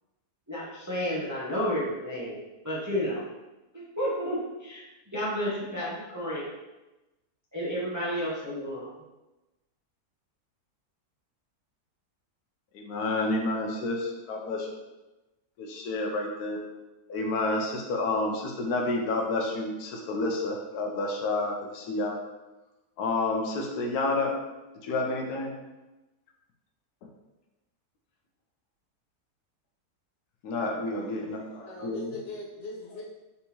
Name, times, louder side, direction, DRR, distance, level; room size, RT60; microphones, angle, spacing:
voice 1, 0.5-2.4 2.6-3.2 3.7-4.8 5.1-6.4 7.5-8.9, equal, 15° right, -7 dB, 0.6 m, -31 dB
voice 2, 12.7-14.7 15.6-16.6 17.1-22.2 23.0-24.3 24.8-25.5 30.4-32.1, left 2 dB, 80° left, 1 dB, 1.2 m, -29 dB
voice 3, 31.0-33.0, left 2 dB, 35° left, -4 dB, 0.7 m, -42 dB
4.1 x 3.5 x 2.9 m, 1.1 s
omnidirectional pair, 1.7 m